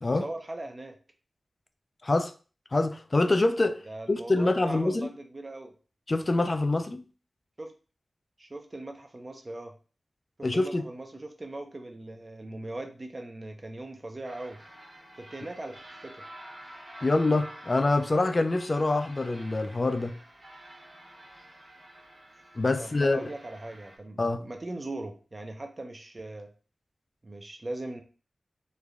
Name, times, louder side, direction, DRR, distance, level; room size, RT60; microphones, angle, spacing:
voice 1, 0.2-1.0 3.9-5.7 7.6-7.7 8.4-9.7 10.4-14.6 15.2-16.2 22.8-26.5 27.2-28.0, right 2 dB, 40° right, 0.4 m, -40 dB
voice 2, 2.7-3.8 4.1-5.1 6.1-7.0 10.4-10.8 17.0-20.2 22.6-23.2 24.2-24.4, left 2 dB, 45° left, 0.3 m, -25 dB
sound 1, 14.2-24.0, right 1 dB, 65° right, 0.9 m, -49 dB
3.1 x 2.2 x 2.3 m
cardioid pair, 50°, 0 cm